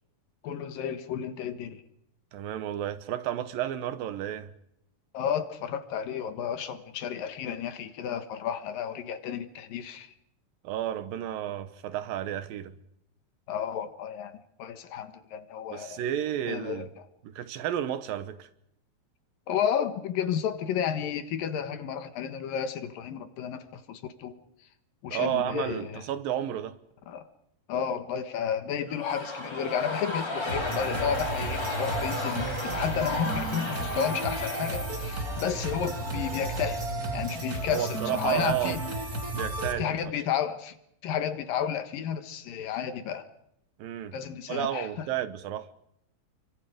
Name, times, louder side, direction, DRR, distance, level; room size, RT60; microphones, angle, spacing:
voice 1, 0.4-1.8 5.1-10.1 13.5-14.3 14.6-16.0 16.5-16.9 19.5-24.3 25.0-26.0 27.1-27.2 27.7-36.8 37.1-38.8 39.8-40.7 41.0-43.2 44.1-45.1, left 8 dB, 70° left, 3.1 m, -32 dB
voice 2, 2.3-4.5 10.6-12.8 15.7-16.9 17.2-18.5 25.1-26.8 37.7-38.8 39.3-39.9 43.8-44.2 44.5-45.7, right 11 dB, 75° right, 2.6 m, -32 dB
sound 1, 28.8-37.3, left 2 dB, 25° left, 4.3 m, -35 dB
sound 2, 30.5-39.7, right 2 dB, 25° right, 2.5 m, -33 dB
30.0 x 24.0 x 5.1 m
omnidirectional pair, 4.4 m